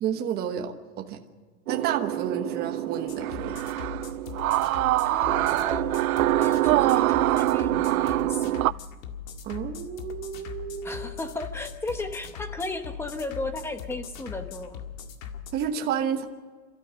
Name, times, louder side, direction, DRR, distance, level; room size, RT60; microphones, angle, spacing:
voice 1, 0.0-1.2 1.7-3.6 9.4-11.0 15.5-16.3, right 8 dB, 20° right, 5 dB, 1.1 m, -30 dB
sound 1, 1.7-8.7, right 15 dB, 70° right, 0.6 m, -24 dB
sound 2, 3.1-15.5, left 7 dB, 60° left, 2.0 m, -40 dB
voice 2, 5.0-6.0 6.4-8.7 10.8-14.8, left 2 dB, 5° left, 8 dB, 0.9 m, -35 dB
29.0 x 13.5 x 7.5 m, 1.5 s
supercardioid pair, 150°, 44 cm